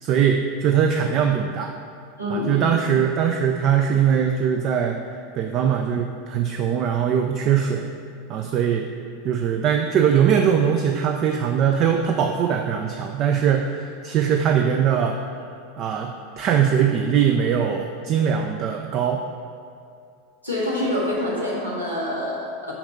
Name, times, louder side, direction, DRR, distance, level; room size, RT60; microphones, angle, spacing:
voice 1, 0.0-1.7 2.3-5.0 5.4-7.9 8.3-8.9 9.2-15.2 15.8-19.2, right 8 dB, 40° right, 4 dB, 0.5 m, -21 dB
voice 2, 2.2-2.7 20.4-22.7, left 1 dB, 85° right, -7 dB, 2.0 m, -26 dB
5.8 x 5.3 x 6.5 m, 2.4 s
figure-of-eight pair, 85°, 0 cm